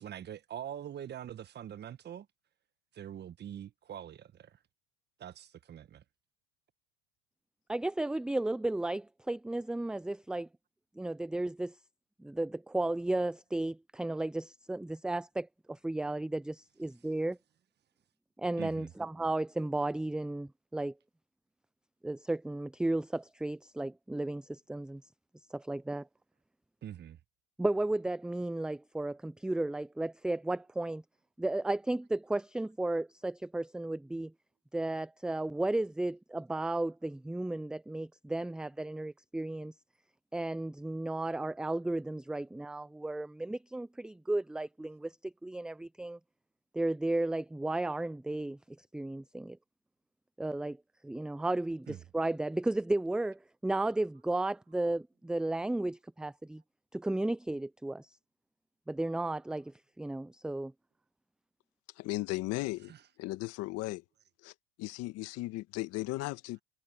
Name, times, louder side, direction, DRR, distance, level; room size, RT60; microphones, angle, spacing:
voice 1, 0.0-2.3 2.9-4.6 5.2-6.0 18.6-18.9 26.8-27.2 51.9-52.0 62.9-63.0, right 10 dB, 35° right, 1.5 m, -44 dB
voice 2, 7.7-10.5 11.0-11.8 12.2-17.4 18.4-20.9 22.0-25.0 25.5-26.1 27.6-31.0 31.4-34.3 34.7-39.7 40.3-46.2 46.7-48.6 48.9-49.6 50.4-50.8 51.0-56.6 56.9-58.2 58.9-60.7, right 2 dB, 5° right, 0.4 m, -34 dB
voice 3, 62.0-62.9 63.2-64.0 64.4-64.5 64.8-66.6, left 19 dB, 55° left, 1.8 m, -36 dB
hypercardioid pair, 90°, 29 cm